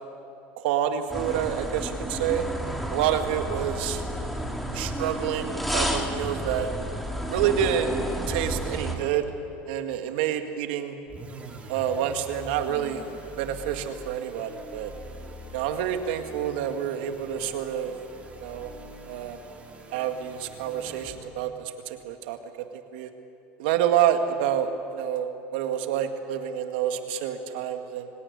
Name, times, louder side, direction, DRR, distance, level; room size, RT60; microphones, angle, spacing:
voice 1, 0.6-2.4 2.9-4.0 4.7-6.7 7.3-7.9 8.3-9.3 9.7-11.0 11.7-13.0 13.4-14.9 15.5-18.0 18.4-18.7 19.1-19.4 19.9-23.1 23.6-28.1, right 9 dB, 85° right, 6 dB, 2.0 m, -28 dB
sound 1, 1.1-9.0, equal, ahead, 3.0 m, -31 dB
sound 2, 11.1-21.5, right 2 dB, 25° right, 4.8 m, -44 dB
25.0 x 17.5 x 9.8 m, 2.8 s
supercardioid pair, 115°, 5 cm